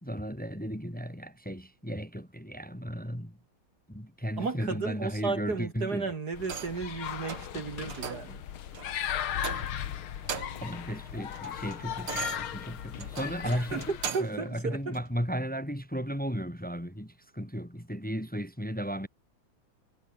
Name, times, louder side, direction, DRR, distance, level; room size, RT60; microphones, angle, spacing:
voice 1, 0.0-3.4 3.9-6.1 10.6-19.1, equal, 5° left, 2.8 m, -35 dB
voice 2, 4.4-8.4 13.4-13.8 14.1-14.9, right 4 dB, 50° right, 2.6 m, -34 dB
sound 1, 6.3-14.1, left 10 dB, 75° left, 2.1 m, -37 dB
sound 2, 6.4-6.9 7.3-7.5 7.9-8.3 8.7-8.9 9.4-9.9 10.2-10.7 11.1-14.4 14.9-15.1, right 7 dB, 90° right, 3.0 m, -39 dB
omnidirectional pair, 2.3 m